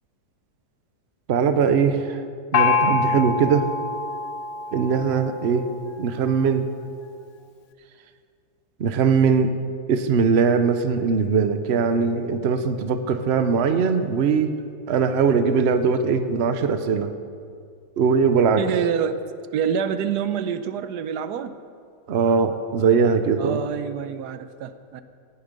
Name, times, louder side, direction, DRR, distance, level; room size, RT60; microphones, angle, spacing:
voice 1, 1.3-2.2 2.5-3.7 4.7-5.6 6.0-6.6 8.8-9.5 9.9-14.5 14.9-17.1 18.0-18.6 22.1-23.6, right 5 dB, 50° right, 9 dB, 0.9 m, -20 dB
Gong, 2.5-6.0, left 4 dB, 55° left, 1.1 m, -25 dB
voice 2, 18.6-21.5 23.4-25.0, right 8 dB, 90° right, 11 dB, 1.3 m, -27 dB
17.5 x 9.9 x 5.3 m, 2.3 s
omnidirectional pair, 1.7 m